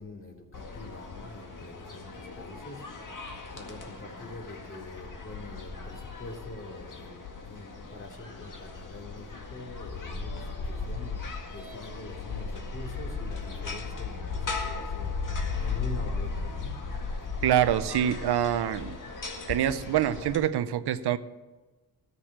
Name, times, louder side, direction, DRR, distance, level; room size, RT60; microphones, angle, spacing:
voice 1, 0.0-2.8 3.5-15.1 15.6-16.7, left 1 dB, 30° left, 0 dB, 2.8 m, -44 dB
sound 1, 0.5-20.4, left 4 dB, 55° left, 2.0 m, -37 dB
voice 2, 17.4-19.0 19.5-21.2, right 10 dB, 90° right, 13 dB, 0.7 m, -25 dB
13.5 x 7.0 x 7.4 m, 1.2 s
cardioid pair, 75°, 38 cm